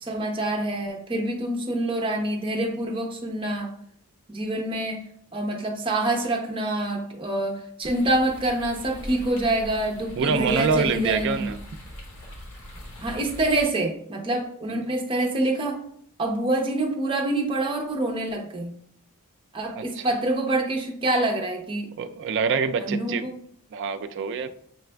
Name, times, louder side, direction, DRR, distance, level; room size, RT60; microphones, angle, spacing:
voice 1, 0.0-3.7 4.3-5.0 5.3-11.5 13.0-15.8 16.2-18.7 19.5-21.9 22.8-23.3, right 1 dB, 25° right, 1 dB, 0.7 m, -26 dB
sound 1, 7.8-13.6, equal, 80° left, 1.2 m, -41 dB
voice 2, 10.2-11.6 14.7-14.9 19.7-20.0 22.0-23.3 23.7-24.5, right 5 dB, 55° right, 9 dB, 0.3 m, -26 dB
6.8 x 2.4 x 2.2 m, 0.64 s
head